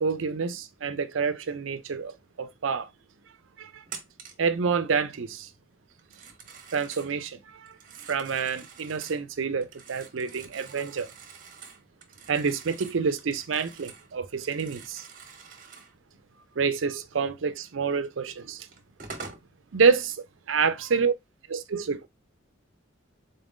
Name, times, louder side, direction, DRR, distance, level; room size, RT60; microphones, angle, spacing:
voice 1, 0.0-2.9 3.6-3.8 4.4-5.5 6.7-7.7 8.1-11.1 12.3-15.1 16.6-18.7 19.7-21.1 21.5-22.1, right 5 dB, 75° right, 0.5 m, -28 dB
Telephone, 3.9-4.5 6.0-7.1 7.7-9.2 9.6-14.1 14.4-15.9 18.0-18.1 18.7-19.5, right 5 dB, 45° right, 0.9 m, -46 dB
3.9 x 2.6 x 3.5 m
head